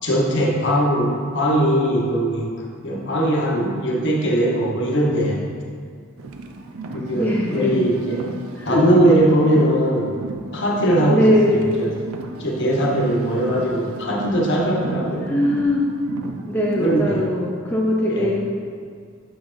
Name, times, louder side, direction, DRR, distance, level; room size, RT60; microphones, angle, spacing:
voice 1, 0.0-2.5 2.8-5.4 6.9-8.3 8.6-10.2 10.5-12.0 12.4-15.3 16.8-17.2 18.1-18.3, right 1 dB, 55° left, -2 dB, 1.0 m, -20 dB
Car, 6.2-17.3, right 2 dB, 90° right, 0.5 m, -34 dB
voice 2, 7.1-7.8 8.6-8.8 11.1-11.8 15.3-15.9 16.5-18.7, left 1 dB, 10° left, -4 dB, 0.5 m, -21 dB
6.7 x 5.9 x 2.6 m, 2.1 s
head